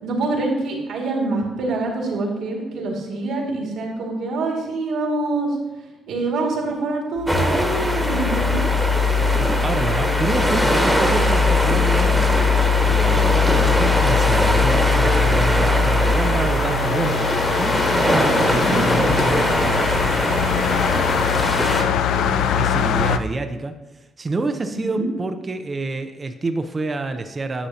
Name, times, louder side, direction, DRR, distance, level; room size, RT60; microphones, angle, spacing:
voice 1, 0.0-5.6 6.1-8.6 18.5-18.8 24.7-25.0, right 2 dB, 80° right, -2 dB, 2.0 m, -25 dB
sound 1, 7.2-23.2, left 6 dB, 85° left, 0.3 m, -21 dB
sound 2, 7.3-21.8, equal, ahead, 1.1 m, -22 dB
voice 2, 9.2-12.3 12.6-17.3 17.9-20.0 20.5-23.7 24.2-27.7, right 3 dB, 30° right, 7 dB, 0.5 m, -28 dB
10.0 x 6.7 x 2.8 m, 1.1 s
cardioid pair, 90°, 0 cm